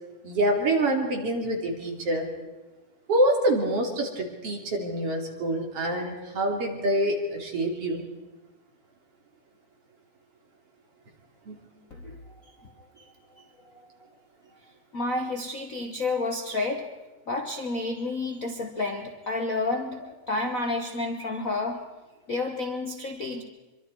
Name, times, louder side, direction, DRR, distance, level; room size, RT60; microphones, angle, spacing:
voice 1, 0.2-2.3 3.1-8.0 11.5-11.6, right 1 dB, 50° right, 1 dB, 3.8 m, -26 dB
voice 2, 14.9-16.9 17.3-21.8 22.3-23.4, left 2 dB, 85° left, 4 dB, 0.7 m, -30 dB
25.0 x 24.0 x 4.7 m, 1.1 s
omnidirectional pair, 3.5 m